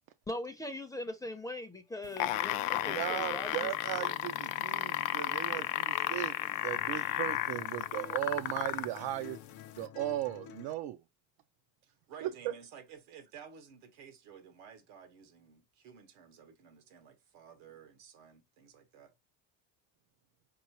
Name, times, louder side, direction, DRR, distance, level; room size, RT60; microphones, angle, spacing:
voice 1, 0.3-3.7, left 1 dB, 10° left, 0.5 m, -40 dB
sound 1, 2.0-9.0 9.8-9.9, left 15 dB, 90° left, 0.5 m, -33 dB
sound 2, 2.7-10.7, left 9 dB, 45° left, 0.7 m, -51 dB
voice 2, 2.9-6.4 6.6-9.4 9.8-11.0 12.2-12.3, right 14 dB, 60° right, 0.5 m, -37 dB
voice 3, 11.8-19.1, right 7 dB, 80° right, 1.2 m, -53 dB
4.5 x 3.0 x 2.8 m
supercardioid pair, 95°, 44 cm